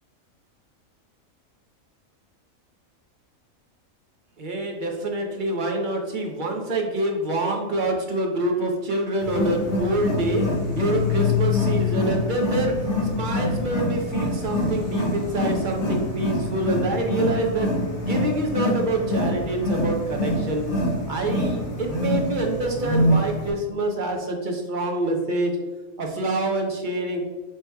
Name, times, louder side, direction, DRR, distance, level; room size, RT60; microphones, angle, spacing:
voice 1, 4.4-10.4 10.7-12.7 13.0-17.7 18.0-20.6 21.1-25.5 26.0-27.2, right 2 dB, 45° right, 2 dB, 0.7 m, -26 dB
Wild animals, 9.2-23.5, left 2 dB, 55° left, 1.4 m, -25 dB
7.7 x 2.9 x 2.3 m, 1.3 s
omnidirectional pair, 1.5 m